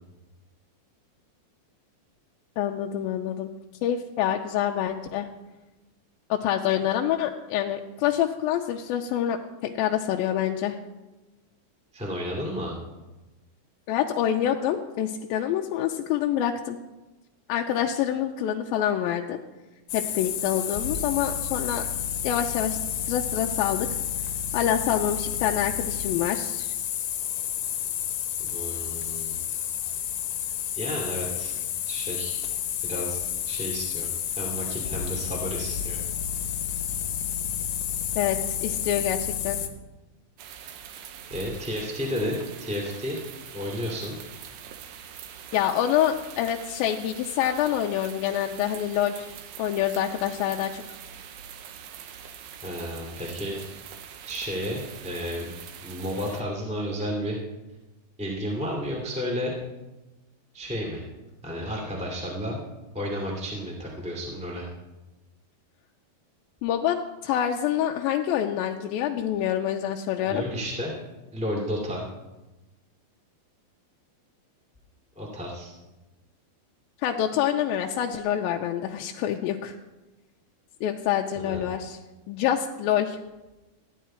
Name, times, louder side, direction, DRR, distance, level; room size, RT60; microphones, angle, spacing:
voice 1, 2.6-3.5 3.8-5.3 6.3-9.4 9.6-10.8 13.9-16.8 17.5-19.4 19.9-21.8 22.2-22.8 23.1-23.9 24.5-26.7 38.2-39.6 45.5-49.3 49.6-50.8 66.6-67.0 67.2-70.4 77.0-79.8 80.8-82.0 82.3-83.2, left 10 dB, 85° left, 2 dB, 2.4 m, -26 dB
voice 2, 11.9-12.8 28.4-29.3 30.8-31.5 31.9-32.4 32.8-33.2 33.5-36.0 41.3-43.2 43.5-44.1 52.6-53.6 54.2-55.5 55.8-57.4 58.2-59.5 60.5-61.0 61.4-62.6 62.9-64.7 70.3-70.9 71.3-72.0 75.1-75.7 81.3-81.7, equal, 5° right, -2 dB, 1.5 m, -32 dB
sound 1, 19.9-39.7, left 9 dB, 70° left, 2.2 m, -30 dB
sound 2, 40.4-56.4, right 8 dB, 75° right, 2.5 m, -43 dB
15.0 x 10.0 x 4.4 m, 1.1 s
omnidirectional pair, 4.2 m